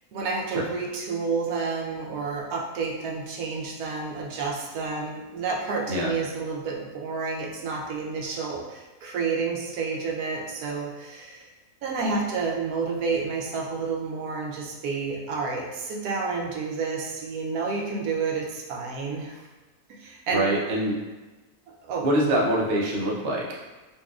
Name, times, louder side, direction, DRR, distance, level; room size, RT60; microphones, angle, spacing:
voice 1, 0.1-11.5 11.8-19.5 19.9-20.4 21.7-22.0, right 4 dB, 80° right, -2 dB, 1.1 m, -30 dB
voice 2, 20.3-21.0 22.0-23.4, right 1 dB, 55° right, -4 dB, 0.7 m, -24 dB
4.2 x 2.7 x 2.3 m, 1.2 s
omnidirectional pair, 1.6 m